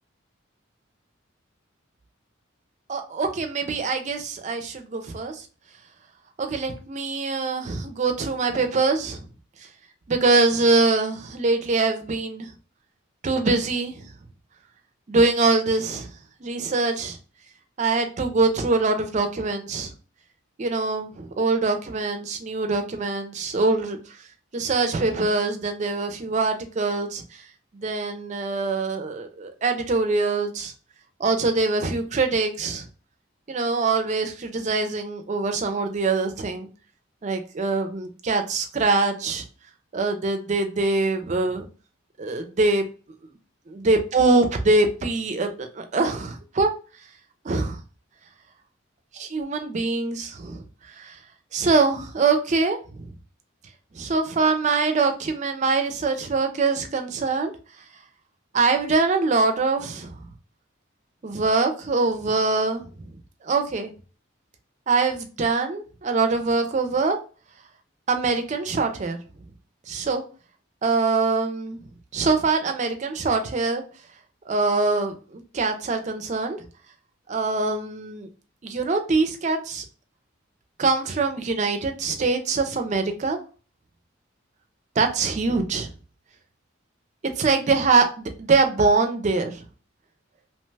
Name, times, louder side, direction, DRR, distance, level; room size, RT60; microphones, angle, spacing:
voice 1, 2.9-5.4 6.4-9.2 10.1-12.5 13.2-13.9 15.1-16.1 16.4-17.2 17.8-19.9 20.6-24.0 24.5-27.2 27.7-30.7 31.2-32.8 33.5-36.7 37.2-39.4 39.9-41.7 42.2-42.9 43.7-46.7 47.4-47.8 49.1-50.6 51.0-51.1 51.5-53.1 54.0-57.5 58.5-60.1 61.2-62.8 63.4-63.9 64.9-67.2 68.1-69.2 69.9-70.2 70.8-71.8 72.1-73.8 74.5-76.6 77.3-78.3 78.6-79.8 80.8-83.4 85.0-85.9 87.4-89.6, right 3 dB, 35° right, 6 dB, 0.4 m, -23 dB
2.8 x 2.2 x 3.2 m, 0.37 s
head